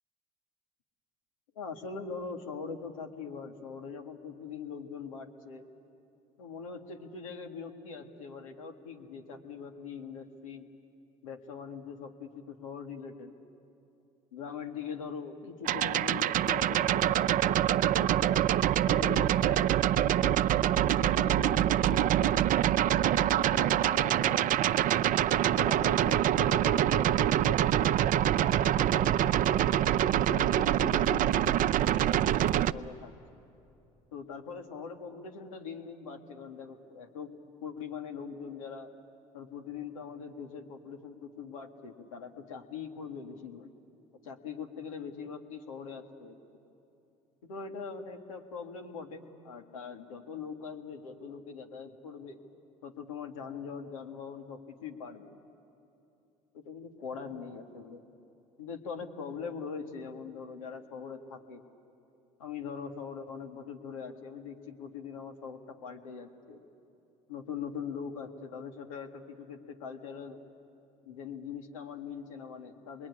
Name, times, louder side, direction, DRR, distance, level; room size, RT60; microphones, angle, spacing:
voice 1, 1.6-5.7 6.4-10.7 11.2-13.4 14.3-20.4 20.8-24.5 25.4-29.7 30.1-33.2 34.1-37.3 37.6-38.9 39.3-43.7 44.2-46.4 47.4-52.4 52.8-55.4 56.5-58.0 58.6-61.6 62.4-66.6 67.3-70.4 71.1-73.1, left 6 dB, 90° left, 5 dB, 1.9 m, -42 dB
sound 1, 15.6-32.7, right 11 dB, 55° right, 0.6 m, -25 dB
27.0 x 22.0 x 9.8 m, 2.8 s
hypercardioid pair, 65°, 17 cm